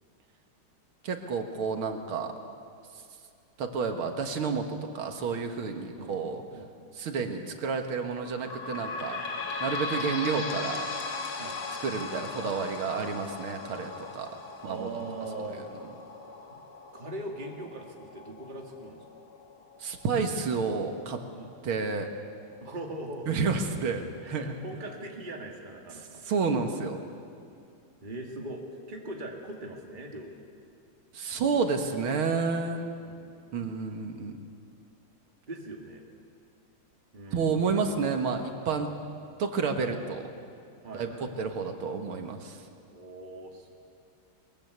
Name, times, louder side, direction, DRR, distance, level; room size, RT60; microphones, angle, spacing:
voice 1, 1.0-2.3 3.6-6.4 7.0-9.2 9.6-10.9 11.8-14.3 14.6-14.9 19.8-21.2 21.6-22.1 23.3-24.6 26.2-27.0 31.1-32.9 33.5-34.4 37.3-38.9 39.4-40.2 40.9-41.1 41.4-42.6, right 5 dB, 90° right, 5 dB, 2.4 m, -30 dB
sound 1, 8.3-21.4 22.0-22.1 22.4-22.5 23.3-23.4, left 4 dB, 85° left, 2.5 m, -38 dB
voice 2, 14.6-15.6 16.5-16.6 16.9-19.0 21.3-21.5 22.6-23.5 24.2-26.2 28.0-28.6 28.9-30.4 33.0-33.4 35.5-36.0 37.1-37.6 40.8-41.3 42.9-43.7, right 2 dB, 25° right, 1 dB, 2.3 m, -40 dB
22.0 x 21.0 x 8.2 m, 2.5 s
omnidirectional pair, 2.3 m